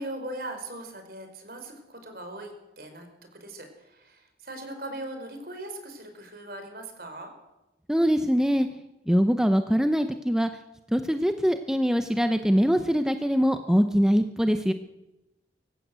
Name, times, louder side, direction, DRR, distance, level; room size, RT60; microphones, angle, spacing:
voice 1, 0.0-3.1 3.3-7.3, right 1 dB, 55° right, 6 dB, 4.8 m, -39 dB
voice 2, 7.9-8.7 9.1-10.5 10.9-14.7, equal, 5° right, 7 dB, 0.7 m, -23 dB
24.5 x 15.0 x 8.1 m, 0.99 s
head